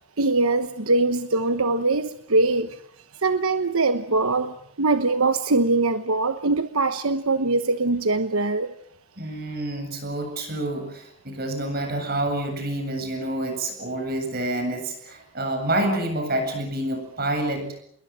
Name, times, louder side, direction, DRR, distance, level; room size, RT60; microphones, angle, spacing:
voice 1, 0.2-2.8 3.2-8.7, right 3 dB, 80° right, 10 dB, 1.1 m, -22 dB
voice 2, 9.2-17.7, right 1 dB, 45° right, 6 dB, 7.9 m, -28 dB
28.0 x 22.0 x 7.6 m, 0.70 s
head